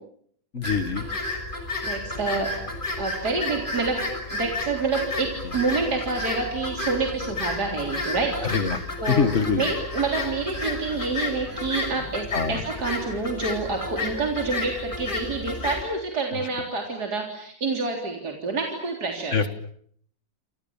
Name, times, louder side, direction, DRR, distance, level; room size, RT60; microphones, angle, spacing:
voice 1, 0.5-1.1 8.5-8.8 9.1-9.6 12.3-12.6 19.3-19.5, left 5 dB, 40° left, 11 dB, 2.0 m, -23 dB
sound 1, 0.6-15.8, left 2 dB, 25° left, 6.6 m, -32 dB
voice 2, 1.8-2.5 3.0-4.0 4.3-9.3 9.6-19.4, right 3 dB, 55° right, 2 dB, 4.2 m, -28 dB
28.5 x 28.0 x 7.3 m, 0.64 s
omnidirectional pair, 2.0 m